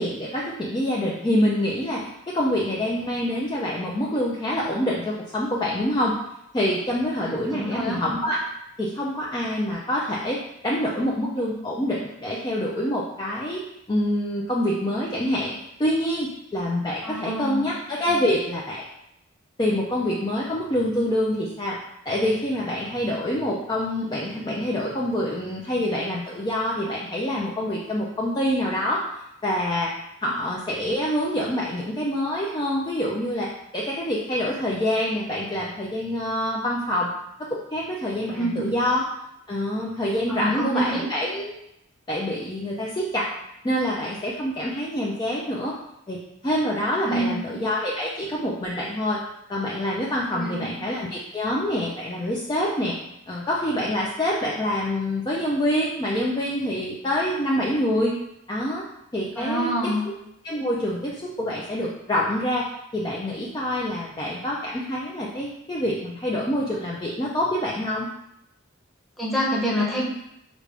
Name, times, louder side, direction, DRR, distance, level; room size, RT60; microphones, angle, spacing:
voice 1, 0.0-6.2 6.5-8.4 8.8-13.6 13.9-15.5 15.8-18.8 19.6-21.8 22.1-29.0 29.4-29.9 30.2-37.1 37.5-39.1 39.5-41.5 42.1-43.3 43.6-45.7 46.1-46.2 46.4-49.2 49.5-53.0 53.3-58.2 58.5-58.8 59.1-59.9 60.4-68.1, left 1 dB, 20° left, -5 dB, 0.4 m, -26 dB
voice 2, 7.2-8.0 17.0-17.7 30.2-30.3 38.3-38.7 40.3-41.0 47.1-47.5 50.3-50.7 59.4-60.1 69.2-70.0, equal, ahead, -5 dB, 0.8 m, -27 dB
5.0 x 2.4 x 3.3 m, 0.81 s
head